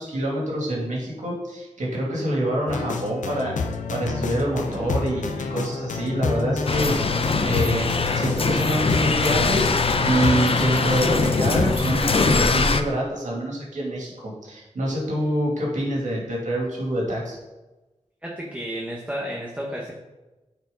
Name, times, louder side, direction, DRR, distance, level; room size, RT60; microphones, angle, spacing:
voice 1, 0.0-7.0 7.4-7.9 8.1-17.4, right 1 dB, 80° right, -3 dB, 2.5 m, -26 dB
sound 1, 2.7-11.8, left 4 dB, 90° left, 0.6 m, -29 dB
sound 2, 6.7-12.8, left 3 dB, 50° left, 0.6 m, -22 dB
voice 2, 18.2-19.9, equal, 10° right, -2 dB, 1.2 m, -32 dB
9.1 x 4.8 x 3.9 m, 1.1 s
wide cardioid pair, 75°, 12 cm